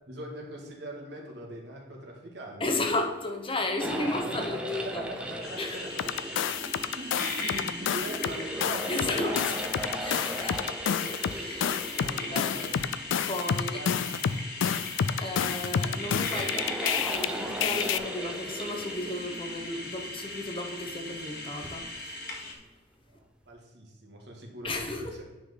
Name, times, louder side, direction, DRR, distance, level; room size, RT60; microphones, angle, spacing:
voice 1, 0.1-2.8 3.8-6.4 6.7-9.6 10.1-10.7 11.9-12.8 13.7-13.9 14.3-14.5 23.1-25.2, right 1 dB, 60° right, 0 dB, 2.1 m, -42 dB
voice 2, 2.6-5.1 5.6-5.8 8.9-9.4 10.0-10.6 11.3-12.5 13.2-13.8 15.2-22.2 24.6-25.1, left 2 dB, 30° left, 4 dB, 1.0 m, -34 dB
sound 1, 3.8-22.4, right 1 dB, 5° right, 0.7 m, -39 dB
sound 2, 5.4-22.5, left 2 dB, 55° left, 1.6 m, -39 dB
sound 3, 6.0-8.3 8.6-17.3 17.6-18.0, left 8 dB, 85° left, 0.4 m, -29 dB
9.4 x 5.8 x 4.0 m, 1.1 s
head